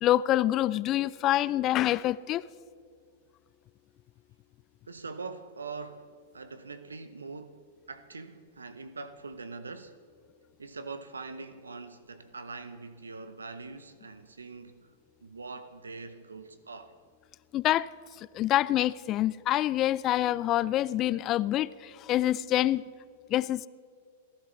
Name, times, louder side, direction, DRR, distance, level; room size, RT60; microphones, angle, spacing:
voice 1, 0.0-2.4 17.5-17.9 18.2-22.8 23.3-23.7, left 14 dB, 35° left, 0.4 m, -26 dB
voice 2, 4.9-6.1 6.3-7.6 7.9-9.9 10.6-14.9 15.2-16.9, right 4 dB, 90° right, 0.8 m, -43 dB
30.0 x 11.5 x 3.3 m
hypercardioid pair, 105°, 0 cm